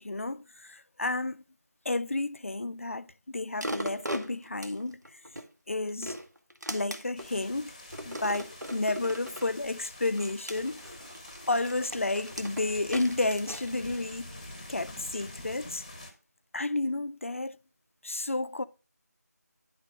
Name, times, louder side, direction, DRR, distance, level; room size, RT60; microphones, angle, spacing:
voice 1, 0.0-1.4 1.9-5.2 5.7-6.2 6.7-7.7 8.0-10.8 11.5-15.8 16.5-17.6 18.0-18.6, left 2 dB, 50° left, 0.3 m, -31 dB
sound 1, 3.6-5.5 5.9-7.3 7.9-9.5 10.2-14.4 14.9-15.0, equal, 90° right, 1.1 m, -39 dB
sound 2, 7.2-16.1, left 1 dB, 20° left, 0.7 m, -46 dB
9.9 x 3.8 x 4.7 m
figure-of-eight pair, 170°, 9 cm